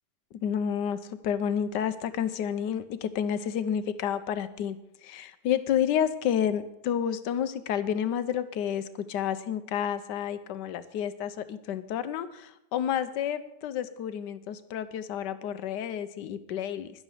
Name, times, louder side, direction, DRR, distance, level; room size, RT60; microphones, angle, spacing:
voice 1, 0.4-4.8 5.0-16.9, left 9 dB, 90° left, 12 dB, 1.4 m, -30 dB
12.0 x 11.0 x 4.9 m, 0.84 s
omnidirectional pair, 1.8 m